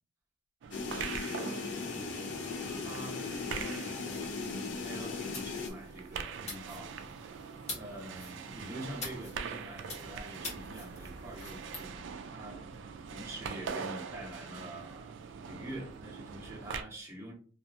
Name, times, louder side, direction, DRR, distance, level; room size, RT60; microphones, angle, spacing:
sound 1, 0.6-16.8, right 6 dB, 70° right, 0.3 m, -43 dB
sound 2, 0.7-5.7, left 4 dB, 65° left, 0.5 m, -38 dB
voice 1, 0.9-1.5 2.8-3.9 4.4-7.2 7.7-12.6 13.1-15.2 15.5-17.3, right 1 dB, 15° right, -3 dB, 0.7 m, -46 dB
sound 3, 4.0-11.9, left 2 dB, 35° left, 0.9 m, -47 dB
2.7 x 2.4 x 2.4 m, 0.42 s
head